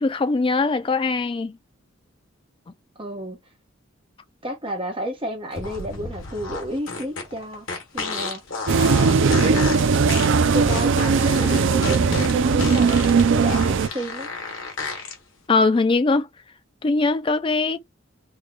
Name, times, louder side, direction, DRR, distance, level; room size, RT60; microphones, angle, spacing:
voice 1, 0.0-1.6 15.5-16.3 16.8-17.8, left 3 dB, 25° left, 0.4 m, -21 dB
voice 2, 3.0-3.4 4.4-7.7 7.9-8.4 9.2-10.1 10.5-14.3, equal, 25° right, 1.1 m, -31 dB
sound 1, 5.5-15.1, left 3 dB, 80° left, 1.3 m, -31 dB
sound 2, 8.7-13.9, right 5 dB, 65° right, 0.4 m, -19 dB
3.2 x 2.3 x 3.7 m
head